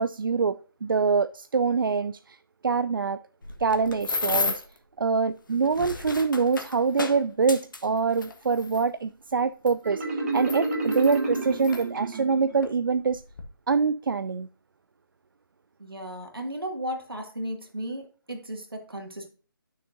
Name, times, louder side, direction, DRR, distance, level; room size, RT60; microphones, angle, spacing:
voice 1, 0.0-2.4 2.6-3.2 3.6-4.6 5.0-13.2 13.7-14.5, right 5 dB, 70° right, 0.4 m, -25 dB
sound 1, 3.4-4.8 5.5-8.8 9.7-9.8 10.4-11.8 12.6-12.8 13.1-13.4, left 3 dB, 65° left, 1.5 m, -33 dB
Marimba xylophone, 9.8-12.6, right 2 dB, 45° right, 2.0 m, -29 dB
voice 2, 15.8-19.3, equal, 85° right, 2.1 m, -35 dB
10.5 x 6.5 x 2.6 m
figure-of-eight pair, 150°, 12 cm